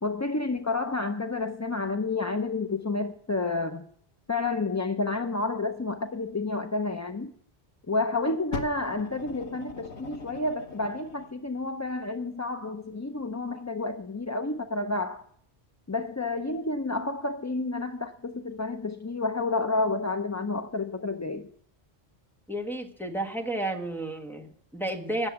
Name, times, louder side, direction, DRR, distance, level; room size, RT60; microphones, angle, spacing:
voice 1, 0.0-3.9 4.3-7.3 7.9-15.2 15.9-21.5, left 3 dB, 25° left, 0.4 m, -30 dB
Fire, 8.5-11.3 12.2-12.3, left 3 dB, 80° left, 1.6 m, -40 dB
voice 2, 22.5-25.3, right 1 dB, ahead, 1.6 m, -32 dB
16.5 x 7.0 x 8.3 m
omnidirectional pair, 1.1 m